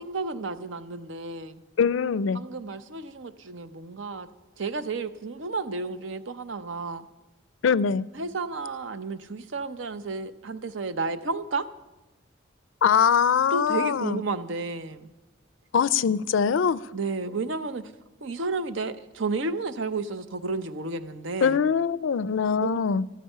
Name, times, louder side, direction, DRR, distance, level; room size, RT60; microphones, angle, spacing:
voice 1, 0.0-1.6 2.3-4.3 4.6-7.1 8.1-11.7 13.5-15.1 16.9-17.9 18.2-21.6 22.6-22.8, right 3 dB, 80° right, 13 dB, 0.7 m, -32 dB
voice 2, 1.8-2.4 7.6-8.1 12.8-14.2 15.7-16.8 21.4-23.0, left 6 dB, 90° left, 19 dB, 0.4 m, -22 dB
13.5 x 12.5 x 5.6 m, 1.0 s
head